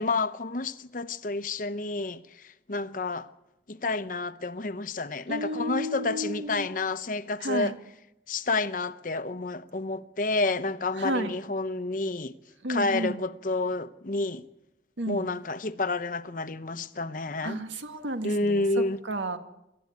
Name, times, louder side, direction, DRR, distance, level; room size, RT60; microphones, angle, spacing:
voice 1, 0.0-3.3 3.7-7.8 8.3-12.3 12.7-14.4 15.1-17.6 18.2-19.0, left 3 dB, 45° left, 0.8 m, -30 dB
voice 2, 5.3-6.7 7.4-7.7 11.0-11.3 12.6-13.2 15.0-15.3 17.4-19.4, right 1 dB, 85° right, 1.7 m, -32 dB
26.0 x 13.0 x 9.6 m
head